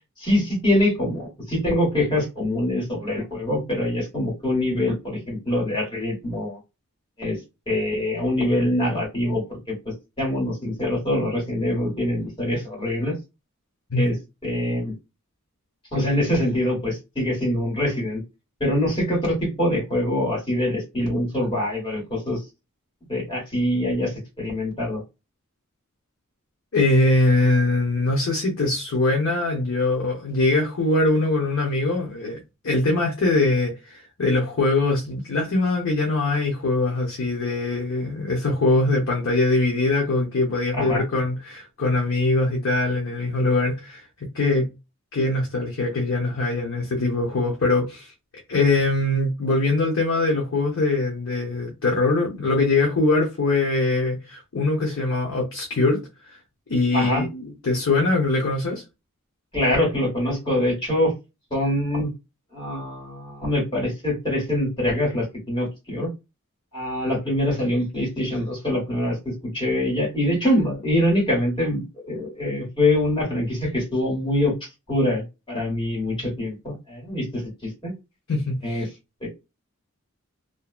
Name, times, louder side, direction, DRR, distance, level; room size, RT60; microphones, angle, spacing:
voice 1, 0.2-6.6 7.2-7.4 7.7-9.7 10.2-13.2 14.0-14.1 14.4-14.9 15.9-18.2 18.6-22.4 23.1-25.0 40.7-41.0 56.9-57.2 59.5-61.1 61.5-62.1 62.5-66.1 66.7-74.6 74.9-77.9 78.6-78.8 79.2-79.3, left 1 dB, 25° left, 1.5 m, -24 dB
voice 2, 26.7-32.4 32.6-44.7 45.1-48.1 48.5-56.0 56.7-58.8 78.3-78.9, left 2 dB, 70° left, 0.8 m, -22 dB
2.6 x 2.2 x 2.4 m
head